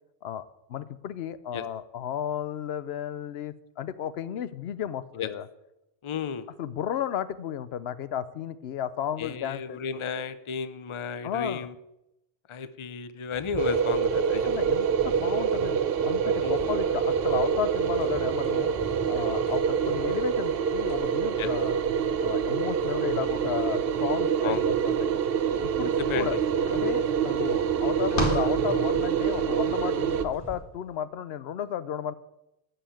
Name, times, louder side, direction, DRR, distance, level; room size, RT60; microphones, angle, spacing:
voice 1, 0.7-5.5 6.6-9.8 11.2-11.7 14.4-18.7 19.1-21.8 22.2-24.6 24.8-25.1 25.6-26.4 26.7-32.1, left 9 dB, 80° left, 15 dB, 0.9 m, -33 dB
voice 2, 6.0-6.5 9.2-11.7 12.5-14.6 16.4-16.6 21.4-21.5 24.4-24.7 26.0-26.4, left 6 dB, 35° left, 13 dB, 0.5 m, -33 dB
sound 1, 13.3-30.6, equal, 25° right, 3.4 m, -45 dB
sound 2, 13.6-30.2, right 7 dB, 70° right, 0.8 m, -26 dB
sound 3, 26.3-29.4, left 1 dB, 60° left, 2.2 m, -33 dB
13.0 x 5.7 x 8.5 m, 0.89 s
omnidirectional pair, 1.0 m